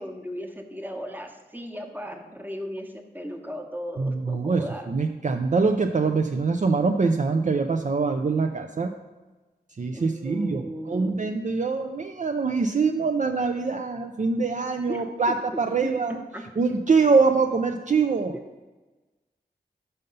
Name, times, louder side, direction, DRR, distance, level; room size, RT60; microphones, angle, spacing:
voice 1, 0.0-4.9 9.9-11.2 14.9-16.4 16.7-16.8, equal, 10° right, 3 dB, 1.0 m, -37 dB
voice 2, 4.0-8.9 9.8-16.2 16.6-18.3, right 4 dB, 45° right, 5 dB, 0.4 m, -24 dB
5.6 x 5.3 x 5.3 m, 1.2 s
cardioid pair, 45°, 17 cm